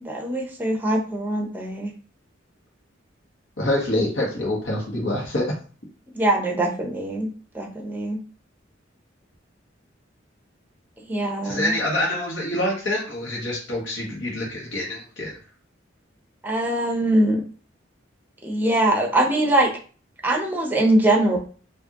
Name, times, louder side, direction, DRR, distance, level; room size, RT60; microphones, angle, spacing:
voice 1, 0.0-1.9 6.1-7.3 7.5-8.2 11.1-11.7 16.4-17.4 18.4-19.7 20.2-21.4, right 1 dB, 10° right, 1 dB, 0.8 m, -22 dB
voice 2, 3.6-5.5 11.4-15.3, left 1 dB, 70° left, -2 dB, 1.3 m, -26 dB
4.7 x 2.6 x 2.9 m, 0.40 s
head